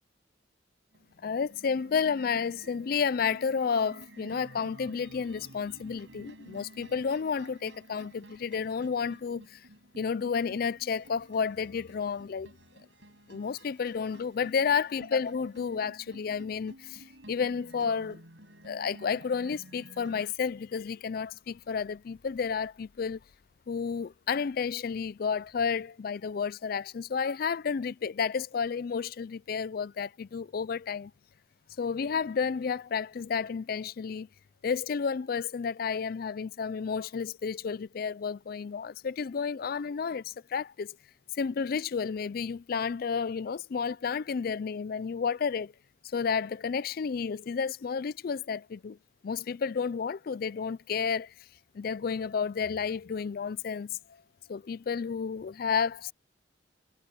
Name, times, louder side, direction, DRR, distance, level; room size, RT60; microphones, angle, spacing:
sound 1, 0.9-20.3, right 1 dB, 75° right, 7.0 m, -53 dB
voice 1, 1.2-9.7 10.0-12.5 13.3-18.2 18.6-23.2 23.7-31.1 31.8-34.3 34.6-41.0 41.3-45.7 46.0-49.0 49.2-51.3 51.7-54.0 54.5-56.1, left 6 dB, 55° left, 0.4 m, -31 dB
head